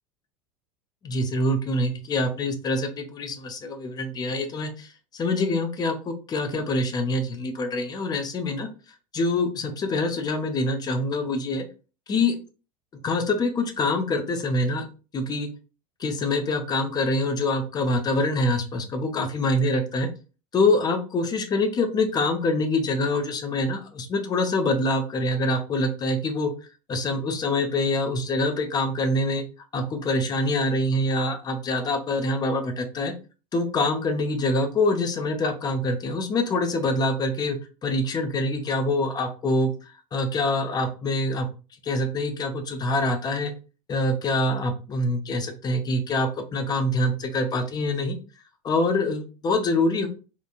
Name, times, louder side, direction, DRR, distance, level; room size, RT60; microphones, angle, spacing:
voice 1, 1.0-8.7 9.1-11.7 12.1-12.3 13.0-14.9 15.1-15.5 16.0-20.1 20.5-26.5 26.9-29.4 29.7-33.1 33.5-39.7 40.1-41.5 41.8-43.5 43.9-48.2 48.6-50.1, left 2 dB, 20° left, 6 dB, 0.6 m, -25 dB
2.9 x 2.4 x 2.3 m, 0.34 s
figure-of-eight pair, 80°, 18 cm